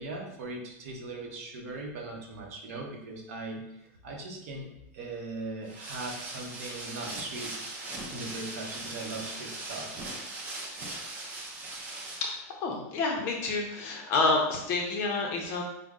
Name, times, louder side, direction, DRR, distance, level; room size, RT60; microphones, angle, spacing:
voice 1, 0.0-3.6 4.0-4.7 4.9-10.1, right 2 dB, 55° right, 1 dB, 0.9 m, -39 dB
sound 1, 5.7-12.4, right 2 dB, 15° right, 0.5 m, -39 dB
voice 2, 12.2-15.6, left 3 dB, 30° left, 0 dB, 0.5 m, -29 dB
5.0 x 2.0 x 3.6 m, 0.86 s
supercardioid pair, 180°, 9 cm